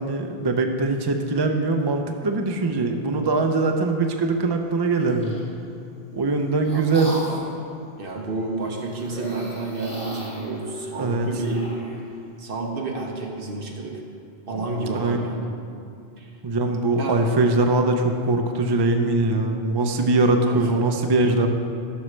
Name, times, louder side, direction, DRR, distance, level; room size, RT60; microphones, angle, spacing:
voice 1, 0.0-5.4 6.1-7.1 11.0-11.3 14.9-15.2 16.4-21.5, right 2 dB, 40° right, 4 dB, 0.4 m, -22 dB
sound 1, 4.9-5.5 6.2-7.6 9.0-12.0, equal, 5° left, 1.7 m, -37 dB
voice 2, 8.0-11.6 12.4-14.0 14.5-15.5 16.2-16.3 17.0-17.2 20.5-20.8, right 3 dB, 60° right, 1 dB, 1.1 m, -30 dB
12.5 x 6.2 x 3.2 m, 2.6 s
omnidirectional pair, 1.1 m